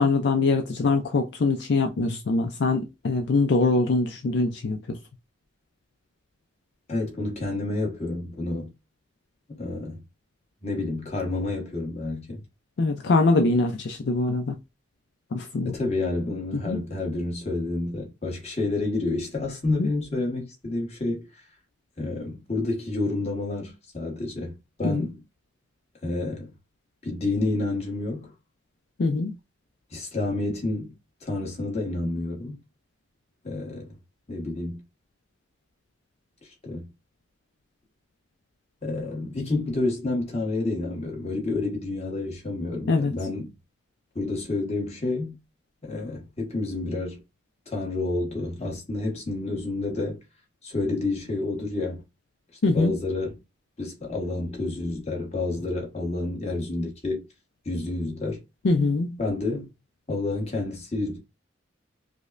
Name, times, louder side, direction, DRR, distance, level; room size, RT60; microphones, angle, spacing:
voice 1, 0.0-5.0 12.8-14.6 15.3-15.7 16.7-16.8 19.8-19.9 24.8-25.1 29.0-29.4 42.9-43.1 52.6-53.0 58.6-59.2, left 3 dB, 60° left, 0.4 m, -23 dB
voice 2, 6.9-8.7 9.5-10.0 10.6-12.4 15.6-21.4 22.0-25.2 26.0-26.5 27.0-28.3 29.9-30.9 31.2-32.6 33.4-33.9 34.3-34.8 36.4-36.9 38.8-43.5 44.1-45.4 45.8-47.2 47.7-50.2 50.6-52.0 52.7-53.4 53.8-57.2 57.6-58.4 59.2-59.7 60.1-61.2, left 2 dB, 35° left, 1.2 m, -29 dB
5.0 x 2.1 x 2.5 m
head